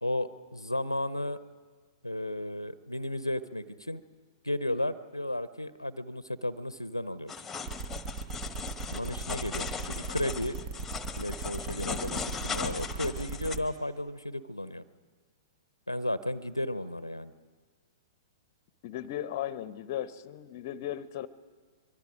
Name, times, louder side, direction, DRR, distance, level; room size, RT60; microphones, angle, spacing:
voice 1, 0.0-1.4 2.0-4.0 4.4-7.3 8.9-10.5 11.2-14.8 15.9-17.3, left 1 dB, 90° left, 16 dB, 0.7 m, -34 dB
sound 1, 7.3-13.6, left 5 dB, 10° left, 1.3 m, -38 dB
sound 2, 7.7-13.6, right 3 dB, 45° right, 1.4 m, -38 dB
voice 2, 18.8-21.3, left 11 dB, 45° left, 17 dB, 0.7 m, -36 dB
24.0 x 24.0 x 5.0 m, 1.5 s
figure-of-eight pair, 110°, 2 cm